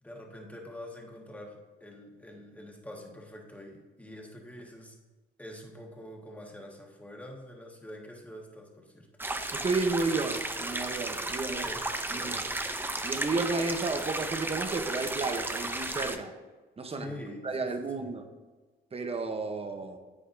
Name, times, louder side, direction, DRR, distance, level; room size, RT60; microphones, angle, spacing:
voice 1, 0.0-5.0 5.4-9.1 11.5-11.8 12.1-12.5 16.9-18.1, left 1 dB, 5° left, 0 dB, 1.7 m, -45 dB
sound 1, 9.2-16.2, right 2 dB, 10° right, 0.6 m, -34 dB
voice 2, 9.5-11.6 12.1-12.4 13.0-16.3 16.8-17.1 17.4-18.2 18.9-20.0, right 3 dB, 30° right, 7 dB, 1.0 m, -32 dB
9.9 x 8.3 x 2.7 m, 1.3 s
cardioid pair, 90°, 20 cm